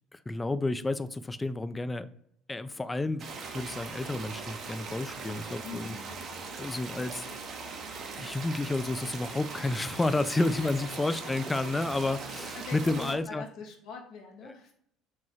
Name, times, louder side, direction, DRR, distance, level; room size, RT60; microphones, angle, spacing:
voice 1, 0.1-2.1 2.5-6.0 6.6-7.4 8.2-13.4 14.5-14.6, left 2 dB, 15° left, 13 dB, 0.3 m, -31 dB
sound 1, 3.2-13.1, right 4 dB, 50° right, 0.8 m, -40 dB
voice 2, 5.6-6.2 10.4-11.3 11.6-12.0 12.4-14.7, left 5 dB, 60° left, 2 dB, 0.6 m, -44 dB
4.6 x 3.0 x 3.1 m, 0.70 s
hypercardioid pair, 60°, 0 cm